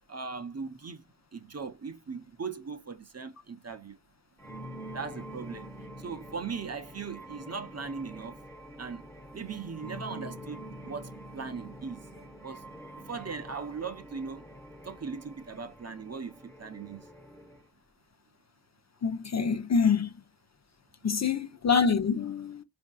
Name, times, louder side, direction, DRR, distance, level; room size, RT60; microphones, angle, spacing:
voice 1, 0.1-1.0 1.3-4.0 4.9-5.7 6.0-8.3 8.8-9.0 9.3-12.0 12.4-12.6 12.9-14.5 14.8-17.0, right 5 dB, 35° right, 0.7 m, -39 dB
sound 1, 4.4-17.7, right 1 dB, 5° left, 1.0 m, -46 dB
voice 2, 19.0-20.1 21.0-22.6, left 6 dB, 40° left, 0.5 m, -26 dB
4.4 x 2.6 x 2.2 m
cardioid pair, 60°, 44 cm